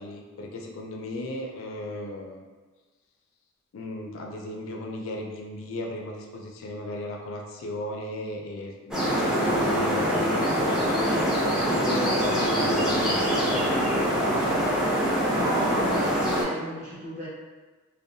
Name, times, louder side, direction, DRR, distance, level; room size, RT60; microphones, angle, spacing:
voice 1, 0.0-2.4 3.7-13.8, left 1 dB, 70° left, 0 dB, 0.4 m, -36 dB
sound 1, 8.9-16.4, equal, 5° right, 0.4 m, -24 dB
voice 2, 15.2-17.3, right 1 dB, 35° right, -10 dB, 0.9 m, -34 dB
2.7 x 2.1 x 2.5 m, 1.3 s
head